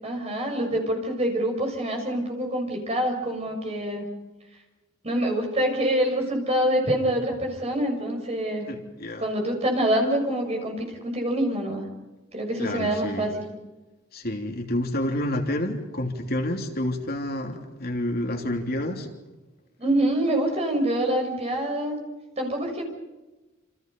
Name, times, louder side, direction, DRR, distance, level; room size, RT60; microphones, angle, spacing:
voice 1, 0.0-4.1 5.0-8.7 9.2-11.9 12.3-13.5 19.8-22.0 22.4-22.8, right 1 dB, 35° right, 2 dB, 6.7 m, -26 dB
voice 2, 8.7-9.2 12.6-13.3 14.1-19.1, left 1 dB, 50° left, 3 dB, 3.1 m, -29 dB
29.0 x 28.5 x 5.4 m, 1.1 s
head